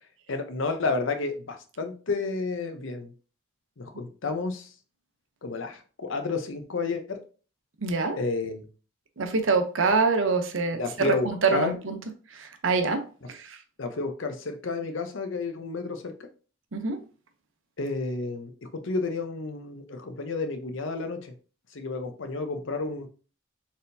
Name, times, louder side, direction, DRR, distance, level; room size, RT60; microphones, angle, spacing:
voice 1, 0.3-3.1 3.8-4.7 5.4-7.2 8.2-8.6 10.8-11.7 13.8-16.1 17.8-21.3 21.7-23.1, left 3 dB, 75° left, 7 dB, 0.7 m, -31 dB
voice 2, 7.8-8.2 9.2-12.0 12.3-13.0 13.3-13.6 16.7-17.0, right 4 dB, 80° right, 7 dB, 0.7 m, -25 dB
4.3 x 3.6 x 2.6 m, 0.37 s
head